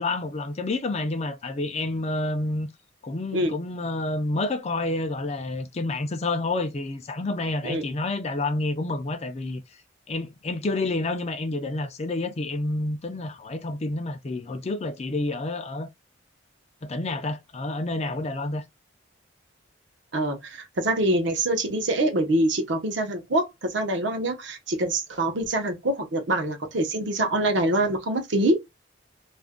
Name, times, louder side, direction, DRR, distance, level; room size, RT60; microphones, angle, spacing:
voice 1, 0.0-2.7 3.0-9.6 10.1-15.9 16.8-18.6, left 2 dB, 35° left, 0.4 m, -29 dB
voice 2, 20.1-28.6, right 1 dB, 65° right, 0.8 m, -25 dB
2.5 x 2.2 x 3.5 m
head